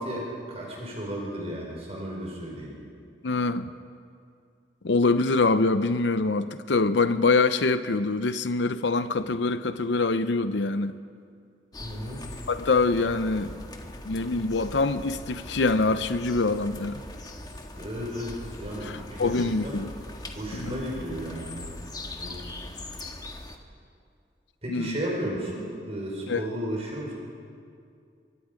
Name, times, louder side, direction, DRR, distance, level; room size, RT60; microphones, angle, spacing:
voice 1, 0.0-2.7 11.8-12.2 17.8-19.3 19.6-19.7 20.4-21.7 22.2-22.4 24.6-27.1, equal, 35° right, 4.8 m, -34 dB
voice 2, 3.2-3.7 4.8-11.0 12.5-13.6 14.0-17.0 18.8-19.9 20.5-20.7 24.7-25.0 26.3-26.4, left 3 dB, 75° left, 0.7 m, -24 dB
sound 1, 11.7-23.6, left 1 dB, 20° left, 1.5 m, -41 dB
24.0 x 23.5 x 5.1 m
head